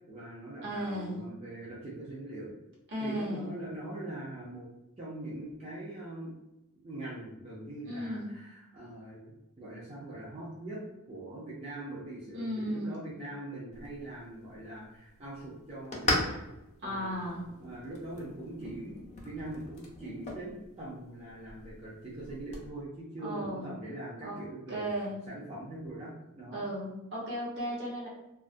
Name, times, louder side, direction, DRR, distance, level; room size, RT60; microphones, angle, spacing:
voice 1, 0.1-2.5 3.0-4.7 5.0-6.3 6.8-10.8 11.1-16.4 16.8-17.2 17.6-24.9 25.3-26.6, right 1 dB, 30° right, -8 dB, 0.5 m, -42 dB
voice 2, 0.6-1.2 2.9-3.5 7.8-8.3 12.3-12.9 16.8-17.4 23.2-23.8 24.2-24.4 24.7-25.2 26.5-28.1, equal, 55° right, -5 dB, 0.9 m, -35 dB
sound 1, 13.7-22.7, left 2 dB, 30° left, 0.5 m, -39 dB
2.3 x 2.0 x 2.5 m, 0.92 s
head